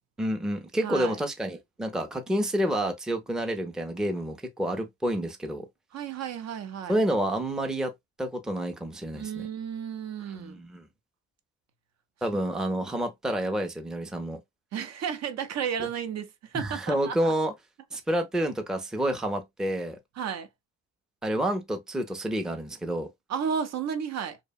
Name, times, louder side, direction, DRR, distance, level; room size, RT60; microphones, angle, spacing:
voice 1, 0.2-5.7 6.9-7.9 8.2-9.4 10.3-10.8 12.2-14.4 15.8-15.9 16.5-17.5 17.9-20.0 21.2-23.1, right 1 dB, ahead, 0.4 m, -29 dB
voice 2, 0.8-1.2 5.9-7.0 9.1-10.6 14.7-17.3 20.2-20.5 23.3-24.4, right 7 dB, 60° right, 0.6 m, -33 dB
2.7 x 2.1 x 2.3 m
cardioid pair, 90°, 30 cm